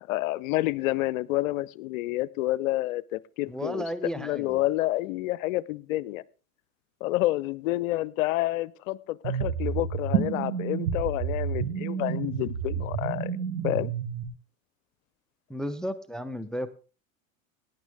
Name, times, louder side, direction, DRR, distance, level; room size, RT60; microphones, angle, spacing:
voice 1, 0.0-3.8 4.2-6.2 7.0-13.3 13.6-13.9, left 17 dB, 70° left, 21 dB, 0.7 m, -29 dB
voice 2, 3.5-4.6 15.5-16.7, equal, ahead, 12 dB, 0.8 m, -33 dB
sound 1, 9.2-14.2, right 7 dB, 75° right, 1.6 m, -30 dB
18.0 x 10.0 x 3.5 m, 0.35 s
hypercardioid pair, 85°, 41 cm